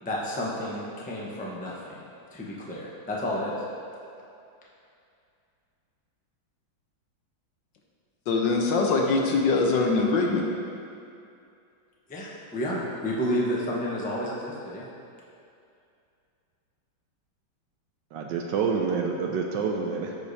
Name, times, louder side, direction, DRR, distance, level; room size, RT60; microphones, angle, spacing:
voice 1, 0.0-2.0 2.3-3.5 12.1-14.9, equal, 10° left, -5 dB, 0.4 m, -31 dB
voice 2, 8.3-10.4, left 3 dB, 70° left, 0 dB, 1.3 m, -23 dB
voice 3, 18.1-20.2, right 5 dB, 75° right, 1 dB, 1.1 m, -27 dB
14.0 x 4.9 x 2.7 m, 2.5 s
omnidirectional pair, 2.2 m